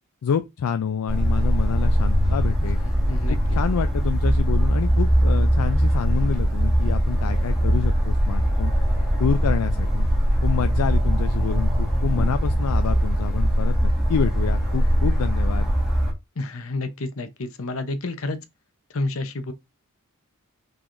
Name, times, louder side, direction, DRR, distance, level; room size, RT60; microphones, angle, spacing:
voice 1, 0.2-2.8 3.3-8.7 9.2-10.1 10.4-15.7, left 7 dB, 80° left, 0.4 m, -27 dB
sound 1, 1.1-16.1, equal, 5° right, 1.6 m, -21 dB
voice 2, 2.8-3.4 16.4-18.4 18.9-19.5, left 2 dB, 65° left, 0.8 m, -30 dB
5.7 x 3.4 x 2.5 m
head